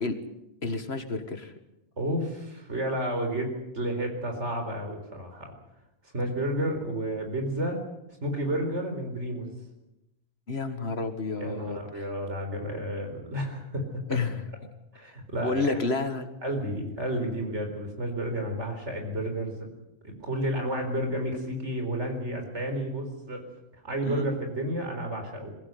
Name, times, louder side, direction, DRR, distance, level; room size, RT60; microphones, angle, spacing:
voice 1, 0.6-1.5 10.5-11.8 14.1-14.4 15.3-16.3 24.0-24.3, left 3 dB, 55° left, 8 dB, 2.0 m, -30 dB
voice 2, 2.0-5.5 6.1-7.8 8.2-9.5 11.4-14.2 14.9-15.8 16.4-19.7 20.0-23.4 23.8-25.5, right 1 dB, 65° right, 4 dB, 4.7 m, -31 dB
22.0 x 16.0 x 9.4 m, 0.93 s
omnidirectional pair, 1.3 m